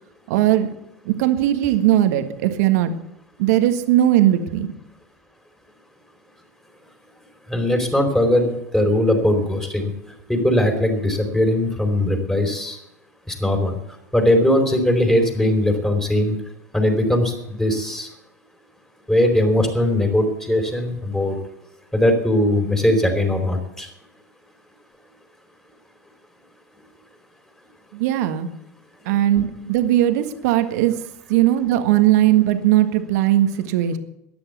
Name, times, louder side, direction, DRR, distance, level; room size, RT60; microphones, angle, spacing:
voice 1, 0.3-0.7 1.1-2.9 3.4-4.7 27.9-28.5 29.1-30.9 31.3-34.0, right 13 dB, 65° right, 8 dB, 1.7 m, -18 dB
voice 2, 7.5-9.9 10.3-12.8 13.3-13.8 14.1-16.3 16.7-18.1 19.1-21.4 21.9-23.9, left 1 dB, 5° left, 4 dB, 4.5 m, -20 dB
13.5 x 10.5 x 8.3 m, 0.84 s
hypercardioid pair, 95°, 9 cm